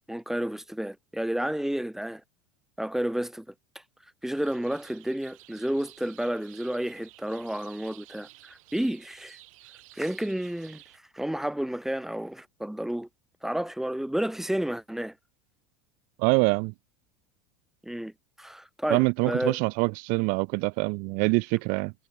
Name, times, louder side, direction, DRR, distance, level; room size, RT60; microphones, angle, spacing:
voice 1, 0.1-2.2 2.8-3.5 4.2-9.4 9.9-10.8 11.1-13.1 13.4-15.1 17.8-18.1 18.4-19.6, right 1 dB, ahead, 0.5 m, -31 dB
sound 1, 4.2-11.0, right 19 dB, 75° right, 7.1 m, -53 dB
voice 2, 16.2-16.7 18.9-21.9, right 34 dB, 55° right, 0.4 m, -25 dB
supercardioid pair, 115°, 17 cm